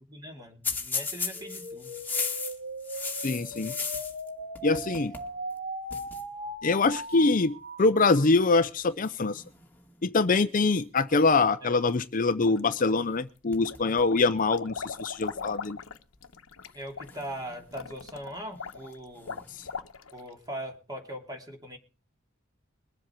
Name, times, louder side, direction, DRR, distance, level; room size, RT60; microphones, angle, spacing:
voice 1, 0.1-2.0 11.6-11.8 16.7-19.5 20.1-21.8, right 1 dB, 20° right, 3 dB, 3.0 m, -40 dB
sound 1, 0.6-4.3 4.6-5.3 5.6-5.7 5.9-6.2 7.1-7.4 8.1-8.5 9.0-10.1 13.1-13.2 13.5-14.3 14.8-14.9 15.8-15.9 17.0-17.9 19.1-19.7, left 5 dB, 10° left, 2.2 m, -36 dB
sound 2, 1.3-8.3, right 1 dB, 45° right, 3.3 m, -39 dB
voice 2, 3.2-3.7 4.6-5.1 6.6-9.4 10.0-15.8 19.6-19.7, left 3 dB, 40° left, 12 dB, 0.6 m, -24 dB
sound 3, 12.4-13.2 13.6-20.3, left 5 dB, 85° left, 1.1 m, -40 dB
22.5 x 7.6 x 4.5 m, 0.35 s
head